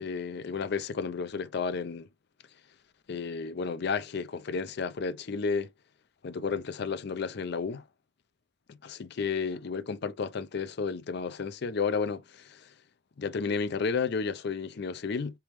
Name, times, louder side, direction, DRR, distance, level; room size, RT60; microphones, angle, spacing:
voice 1, 0.0-2.1 3.1-5.7 6.2-7.8 8.8-12.7 13.2-15.4, left 5 dB, 55° left, 0.5 m, -32 dB
3.5 x 3.1 x 3.0 m
head